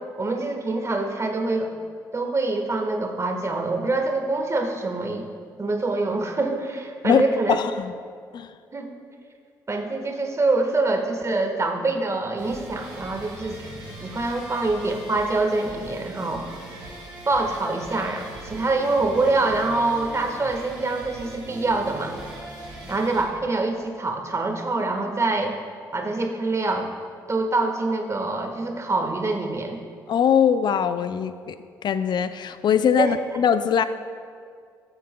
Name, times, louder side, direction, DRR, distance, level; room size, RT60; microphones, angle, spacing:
voice 1, 0.2-1.7 2.1-5.3 5.6-7.6 8.7-8.9 9.7-13.6 14.0-16.4 17.3-22.2 22.9-25.5 25.9-26.9 27.3-29.8 33.0-33.1, right 3 dB, 30° right, 3 dB, 1.4 m, -25 dB
voice 2, 7.5-7.9 8.3-8.5 30.1-31.6 31.8-33.8, left 8 dB, 55° left, 12 dB, 0.5 m, -21 dB
sound 1, 12.4-23.2, right 2 dB, 85° right, 2.2 m, -41 dB
14.0 x 7.8 x 2.2 m, 2.2 s
hypercardioid pair, 50°, 9 cm